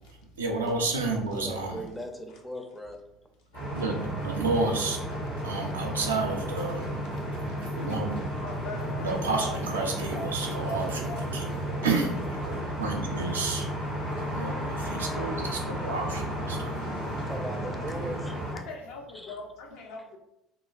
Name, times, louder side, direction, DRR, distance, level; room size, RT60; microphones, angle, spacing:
voice 1, 0.4-1.8 3.7-5.0 5.4-6.8 7.8-8.2 9.0-11.5 11.8-12.1 12.4-13.7 14.3-16.7, right 3 dB, 85° right, 1 dB, 0.4 m, -30 dB
voice 2, 1.3-3.0 17.3-18.6 19.1-19.4, equal, 10° left, 4 dB, 0.4 m, -39 dB
sound 1, 3.5-18.5, equal, 90° left, 1.4 m, -33 dB
voice 3, 8.4-10.3 10.6-12.6 18.5-20.2, left 3 dB, 65° left, 2 dB, 0.4 m, -42 dB
2.9 x 2.1 x 2.4 m, 0.84 s
figure-of-eight pair, 60°, 0 cm